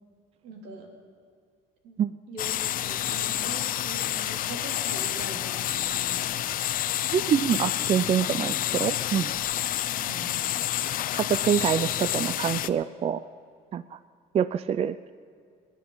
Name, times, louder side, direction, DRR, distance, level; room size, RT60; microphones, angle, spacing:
voice 1, 0.4-0.9 1.8-1.9 2.3-6.7 10.0-10.4, right 2 dB, 90° right, 0 dB, 2.9 m, -43 dB
sound 1, 2.4-12.7, left 12 dB, 55° left, 0.5 m, -29 dB
voice 2, 7.1-9.3 11.1-13.2 13.7-14.0 14.3-15.1, right 8 dB, 35° right, 14 dB, 0.4 m, -26 dB
25.5 x 10.5 x 3.9 m, 2.2 s
cardioid pair, 110°, 17 cm